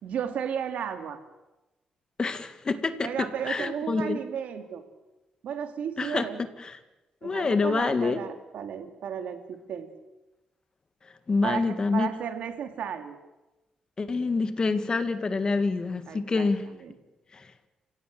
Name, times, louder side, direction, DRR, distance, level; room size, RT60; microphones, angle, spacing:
voice 1, 0.0-1.2 3.0-4.8 5.4-6.4 7.2-9.9 11.4-13.2 16.1-17.0, right 8 dB, 80° right, 7 dB, 2.7 m, -34 dB
voice 2, 2.2-4.2 6.0-6.3 6.6-6.8 7.2-8.2 11.3-12.1 14.0-16.6 17.3-17.5, left 4 dB, 35° left, 10 dB, 1.8 m, -27 dB
29.5 x 17.0 x 7.8 m, 1.0 s
cardioid pair, 105°, 2 cm